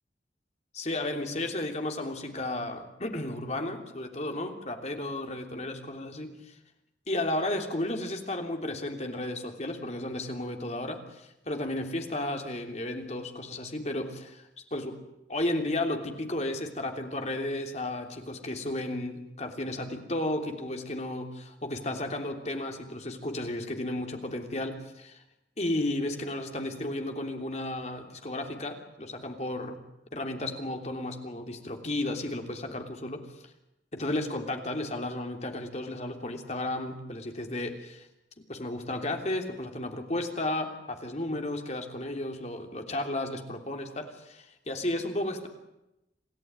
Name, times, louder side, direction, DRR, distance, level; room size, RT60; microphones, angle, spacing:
voice 1, 0.7-6.6 7.1-15.0 15.3-25.2 25.6-29.8 30.1-33.5 33.9-38.1 38.5-45.5, left 1 dB, 35° left, 4 dB, 3.2 m, -33 dB
27.5 x 16.5 x 9.6 m, 0.90 s
head